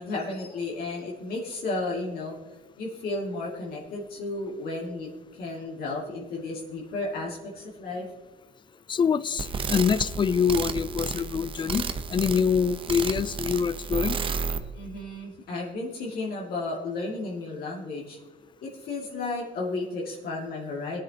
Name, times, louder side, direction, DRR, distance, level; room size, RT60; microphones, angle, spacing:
voice 1, 0.0-2.4 2.8-8.1 14.7-18.2 18.6-21.0, left 2 dB, 65° left, 2.4 m, -33 dB
voice 2, 8.9-14.2, left 6 dB, 30° left, 0.4 m, -25 dB
sound 1, 9.4-14.6, right 5 dB, 30° right, 0.8 m, -32 dB
19.5 x 9.9 x 2.9 m
cardioid pair, 110°, 17 cm